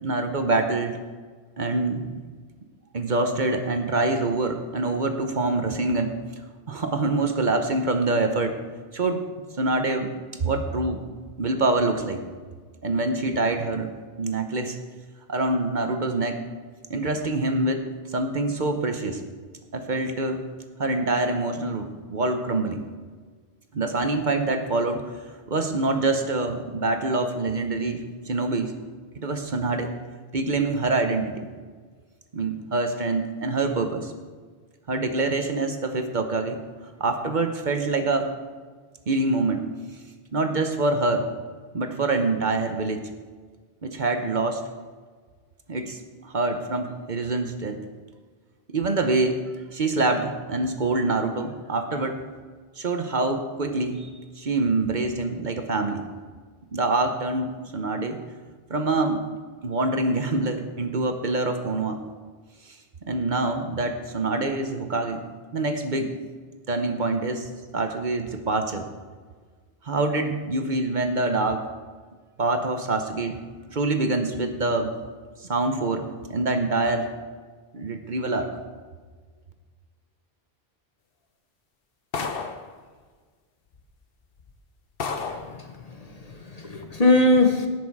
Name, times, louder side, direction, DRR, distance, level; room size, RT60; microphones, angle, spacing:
voice 1, 0.0-1.0 1.6-2.2 2.9-6.1 6.7-8.6 8.9-9.2 9.6-10.1 10.4-11.0 11.4-12.2 12.8-13.9 14.2-14.8 15.3-16.4 16.9-19.2 19.7-20.4 20.8-22.9 23.7-25.1 25.5-28.7 29.2-29.9 30.3-31.5 32.3-34.1 34.9-36.6 37.0-38.3 39.1-39.6 40.3-41.3 41.7-43.0 43.8-44.6 45.7-47.8 48.7-49.4 49.7-52.2 52.8-54.1 54.4-56.0 56.7-58.2 58.7-59.2 59.6-62.0 63.1-65.2 65.5-66.1 66.7-67.5 67.7-68.9 69.8-71.6 72.4-73.4 73.7-74.9 75.5-77.1 77.7-78.5, right 2 dB, 50° right, 6 dB, 1.0 m, -25 dB
sound 1, 82.1-82.7 83.7-83.8 84.4-84.5 85.0-85.5, left 5 dB, 65° left, 1.1 m, -31 dB
voice 2, 85.2-87.7, left 2 dB, 40° left, 4 dB, 1.1 m, -22 dB
18.0 x 6.4 x 4.8 m, 1.5 s
omnidirectional pair, 1.0 m